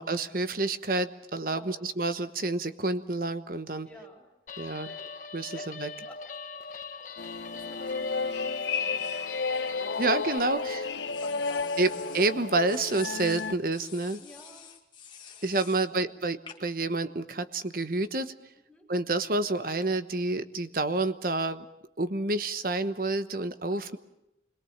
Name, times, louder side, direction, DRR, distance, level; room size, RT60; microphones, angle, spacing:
voice 1, 0.0-3.9 4.6-4.9 5.3-5.9 10.0-10.8 11.8-14.2 15.4-18.3 18.9-21.6 22.0-24.0, right 2 dB, 50° right, 10 dB, 1.1 m, -29 dB
voice 2, 1.5-1.9 3.8-4.3 4.9-5.0 5.5-6.2 6.6-7.0 7.3-10.1 10.5-12.5 14.2-14.8 15.9-16.2 18.7-18.9 23.7-24.0, equal, 5° left, -1 dB, 4.0 m, -53 dB
Guitar, 4.5-10.4, left 5 dB, 45° left, 1.5 m, -41 dB
sound 1, 7.2-13.5, left 4 dB, 85° left, 1.0 m, -32 dB
sound 2, 9.5-10.5 11.1-12.3 12.7-15.9 16.5-16.8, left 7 dB, 25° left, 2.1 m, -48 dB
27.0 x 22.0 x 7.3 m, 0.89 s
head